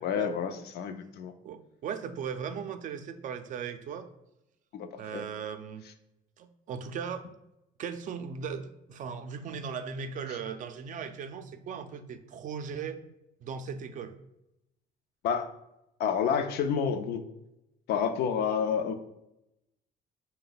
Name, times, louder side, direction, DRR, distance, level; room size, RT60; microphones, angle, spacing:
voice 1, 0.0-1.3 4.7-5.2 15.2-15.5 16.0-17.2 17.9-18.9, left 7 dB, 70° left, 9 dB, 0.4 m, -29 dB
voice 2, 1.4-4.1 5.0-5.9 6.4-7.3 7.8-13.0 13.4-14.2, right 6 dB, 50° right, 8 dB, 0.4 m, -38 dB
4.7 x 2.2 x 3.9 m, 0.87 s
cardioid pair, 110°, 17 cm